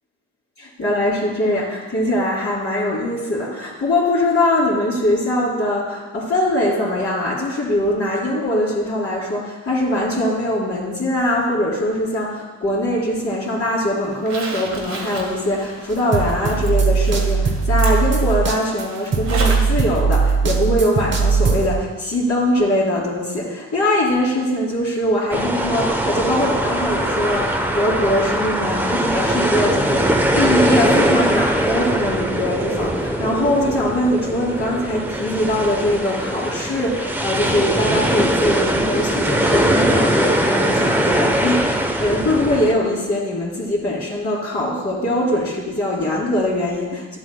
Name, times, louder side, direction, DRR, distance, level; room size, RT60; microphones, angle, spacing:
voice 1, 0.8-47.2, left 1 dB, 45° left, -11 dB, 2.7 m, -22 dB
Zipper (clothing), 14.1-19.8 20.1-20.2 22.1-22.2 22.6-22.7, right 3 dB, 65° right, 1.5 m, -33 dB
sound 1, 15.9-21.8, right 5 dB, 40° right, 1.0 m, -19 dB
sound 2, 25.3-42.7, right 1 dB, 5° right, 0.8 m, -21 dB
11.0 x 7.8 x 2.2 m, 1.3 s
cardioid pair, 90°, 30 cm